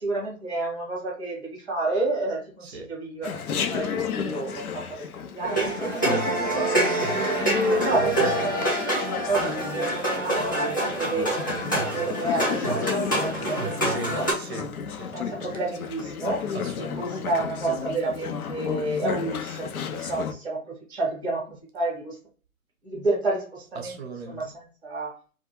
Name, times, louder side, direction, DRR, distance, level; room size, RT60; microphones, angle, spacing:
voice 1, 0.0-3.4 3.7-5.1 5.3-7.1 7.5-12.9 13.2-13.7 14.1-14.3 15.1-16.5 16.8-22.2 22.8-24.0 24.2-25.2, right 2 dB, 10° right, 0.7 m, -30 dB
Chatter, 3.2-20.3, left 7 dB, 75° left, 0.5 m, -33 dB
sound 1, 5.4-14.3, right 1 dB, 15° left, 0.4 m, -26 dB
voice 2, 13.8-15.1 16.5-17.3 23.8-24.5, right 3 dB, 45° right, 0.7 m, -39 dB
2.3 x 2.3 x 2.9 m
figure-of-eight pair, 130°, 43 cm